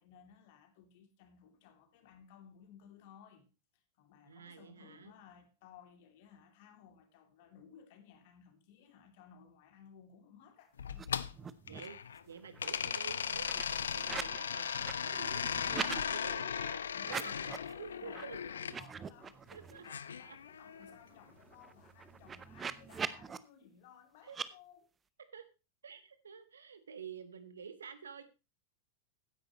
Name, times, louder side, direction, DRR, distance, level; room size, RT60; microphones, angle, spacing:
voice 1, 0.0-3.4 3.7-10.8 16.9-19.8 20.2-24.9, left 8 dB, 50° left, 2.6 m, -59 dB
voice 2, 4.2-5.1 11.7-12.0 12.3-15.4 16.0-17.4 17.8-18.4 19.5-19.9 20.2-20.4 24.2-24.4 25.3-25.4 25.8-28.3, right 6 dB, 70° right, 1.4 m, -49 dB
sound 1, 10.8-12.2 12.6-18.8 19.8-21.0, left 7 dB, 70° left, 0.6 m, -37 dB
sound 2, 10.9-11.1 11.3-12.0 12.3-14.4 14.7-16.0 17.0-17.7 18.1-18.2 18.6-19.9 20.3-20.4 20.7-23.4 24.3-24.5, right 6 dB, 20° right, 0.8 m, -43 dB
15.5 x 10.5 x 3.0 m
figure-of-eight pair, 90°, 0 cm